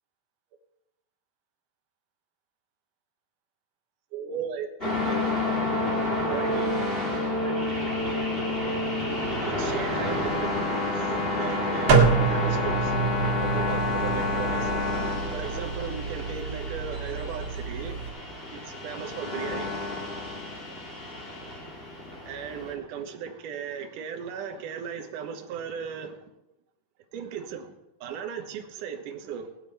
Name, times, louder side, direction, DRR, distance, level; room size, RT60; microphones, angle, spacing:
voice 1, 4.1-5.5 6.3-6.8 7.4-7.6 9.4-13.0 13.4-14.8 15.3-18.0 18.5-19.7 22.3-26.2 27.1-27.7 28.0-29.5, right 7 dB, 80° right, 1.8 m, -37 dB
sound 1, 4.8-22.7, left 2 dB, 20° left, 1.8 m, -29 dB
sound 2, 11.9-18.1, right 5 dB, 50° right, 2.7 m, -27 dB
19.0 x 9.5 x 4.2 m
omnidirectional pair, 5.2 m